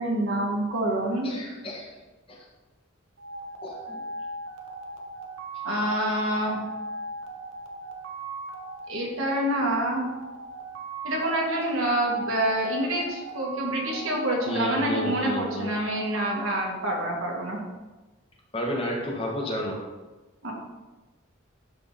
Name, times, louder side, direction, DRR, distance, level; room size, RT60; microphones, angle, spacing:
voice 1, 0.0-1.3 5.6-6.6 8.9-10.1 11.0-17.6 20.4-20.5, right 1 dB, 75° right, -1 dB, 1.9 m, -27 dB
voice 2, 1.2-1.9 2.3-2.4 3.6-4.0 14.5-15.7 18.5-19.8, left 1 dB, 25° left, -2 dB, 1.4 m, -31 dB
sound 1, 3.2-17.6, right 2 dB, 60° right, 0.9 m, -39 dB
12.0 x 3.9 x 4.0 m, 1.2 s
head